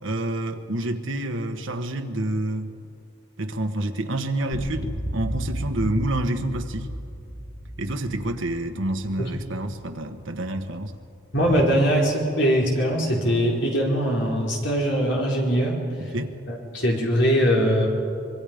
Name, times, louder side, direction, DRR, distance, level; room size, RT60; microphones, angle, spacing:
voice 1, 0.0-2.7 3.4-6.9 7.8-10.9 16.1-16.4, right 1 dB, 80° right, 6 dB, 1.5 m, -28 dB
sound 1, 4.5-9.9, equal, 90° left, 4.6 m, -34 dB
voice 2, 11.3-16.1 16.5-17.9, equal, 65° left, -2 dB, 4.3 m, -22 dB
25.5 x 23.0 x 5.2 m, 2.5 s
head